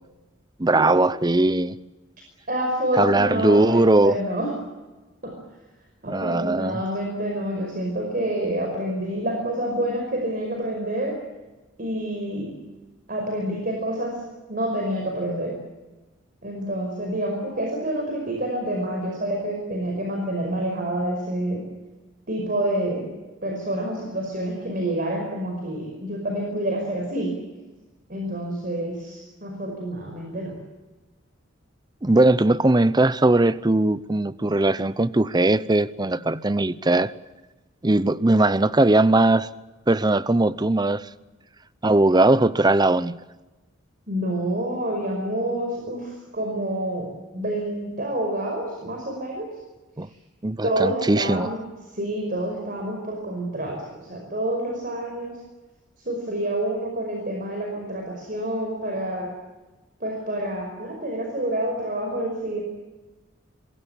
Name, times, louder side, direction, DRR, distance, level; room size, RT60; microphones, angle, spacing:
voice 1, 0.6-1.8 3.0-4.2 6.1-6.8 32.0-37.1 37.8-39.5 39.9-41.1 41.8-43.2 50.0-50.1 50.4-51.5, right 2 dB, 20° right, 16 dB, 0.7 m, -19 dB
voice 2, 2.5-4.6 5.2-5.3 6.0-11.2 11.8-12.5 13.1-14.2 14.5-15.5 16.4-21.6 22.3-23.0 23.4-27.3 28.1-30.6 44.1-47.1 47.3-49.5 50.6-51.6 51.9-53.8 54.0-55.3 56.1-59.3 60.0-62.6, right 1 dB, 45° right, 1 dB, 5.4 m, -28 dB
26.5 x 22.5 x 7.2 m, 1.2 s
head